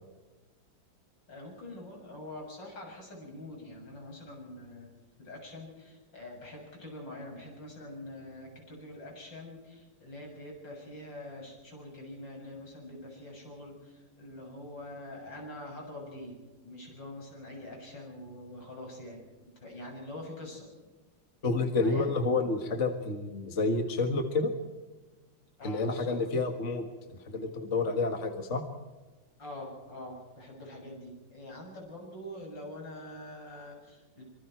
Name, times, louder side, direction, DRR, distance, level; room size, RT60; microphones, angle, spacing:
voice 1, 1.3-4.9 5.2-16.4 16.6-19.2 19.6-20.7 21.8-22.1 25.6-26.2 29.4-34.2, left 1 dB, 80° left, 0 dB, 7.9 m, -45 dB
voice 2, 21.4-24.5 25.6-28.6, left 3 dB, 40° left, 5 dB, 2.0 m, -29 dB
25.5 x 24.5 x 4.5 m, 1.2 s
omnidirectional pair, 2.0 m